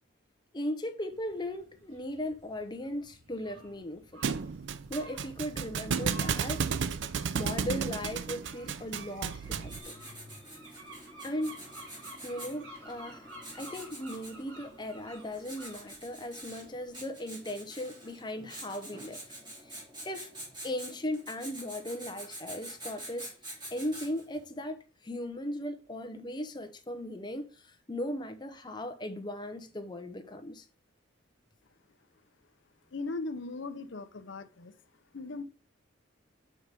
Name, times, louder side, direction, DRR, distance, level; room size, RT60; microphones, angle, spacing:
voice 1, 0.5-4.3 4.9-6.7 7.3-9.9 11.2-11.6 12.2-13.3 13.5-19.2 19.6-20.3 20.6-30.7, left 1 dB, 20° left, 0.7 m, -38 dB
sound 1, 1.1-16.9, right 1 dB, 80° right, 2.6 m, -53 dB
Thump thud, 4.2-9.8, right 6 dB, 60° right, 0.4 m, -33 dB
Writing, 9.4-24.4, right 1 dB, 20° right, 2.8 m, -47 dB
voice 2, 32.9-34.8 35.1-35.4, left 3 dB, 65° left, 0.7 m, -38 dB
5.6 x 4.8 x 5.3 m
head